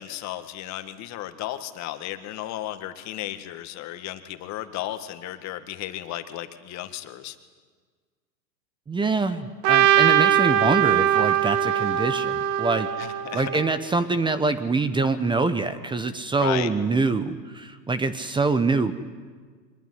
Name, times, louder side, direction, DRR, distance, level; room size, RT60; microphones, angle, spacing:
voice 1, 0.0-7.4 13.0-13.6 16.4-16.7, left 13 dB, 35° left, 9 dB, 1.7 m, -34 dB
voice 2, 8.9-12.9 13.3-18.9, right 3 dB, 10° right, 12 dB, 0.9 m, -25 dB
Trumpet, 9.6-13.8, right 11 dB, 40° right, 1.6 m, -21 dB
24.0 x 21.0 x 9.5 m, 1.5 s
hypercardioid pair, 120°, 50 cm